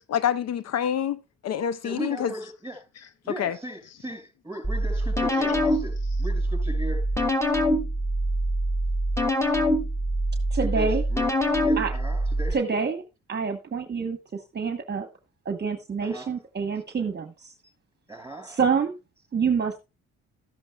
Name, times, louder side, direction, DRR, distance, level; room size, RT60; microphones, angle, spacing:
voice 1, 0.1-1.2 1.4-2.3 3.4-3.6, left 9 dB, 60° left, 0.6 m, -26 dB
voice 2, 1.8-2.9 3.2-7.1 10.6-11.3 11.6-12.6 16.0-16.4 18.1-18.6, right 1 dB, 10° right, 5.5 m, -37 dB
sound 1, 4.6-12.5, equal, 10° left, 1.9 m, -25 dB
voice 3, 10.5-11.0 11.8-11.9 12.5-13.0 13.3-15.1 15.4-17.5 18.4-19.0 19.3-19.8, right 5 dB, 35° right, 1.2 m, -27 dB
13.0 x 10.5 x 2.3 m
supercardioid pair, 65°, 29 cm